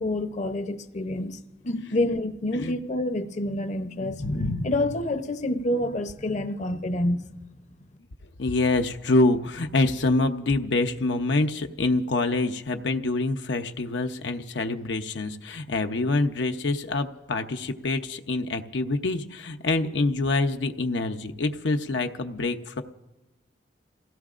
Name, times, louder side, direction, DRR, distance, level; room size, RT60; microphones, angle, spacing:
voice 1, 0.0-1.4 1.6-7.3, left 1 dB, 40° left, 0.7 m, -27 dB
voice 2, 8.4-22.8, left 2 dB, 85° left, 0.7 m, -26 dB
28.5 x 17.0 x 2.5 m
head